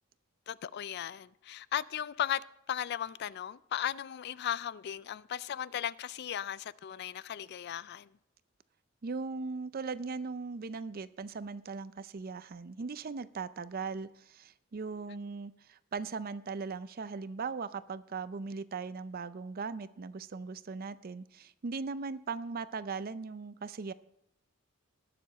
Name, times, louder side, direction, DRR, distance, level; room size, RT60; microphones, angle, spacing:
voice 1, 0.5-8.1, left 10 dB, 50° left, 0.3 m, -36 dB
voice 2, 9.0-23.9, right 4 dB, 45° right, 0.5 m, -39 dB
19.5 x 6.9 x 4.1 m
head